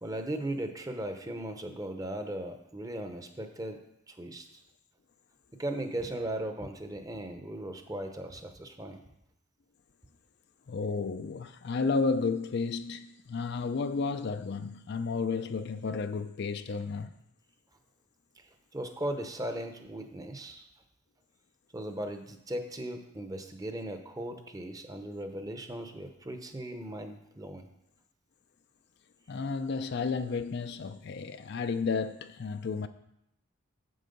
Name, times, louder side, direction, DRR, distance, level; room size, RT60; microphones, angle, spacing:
voice 1, 0.0-3.8 4.1-4.5 5.6-9.0 18.4-20.7 21.7-27.7, right 1 dB, 15° right, 0.7 m, -37 dB
voice 2, 10.7-17.1 29.3-32.9, left 4 dB, 50° left, 0.4 m, -32 dB
7.8 x 7.4 x 5.3 m
head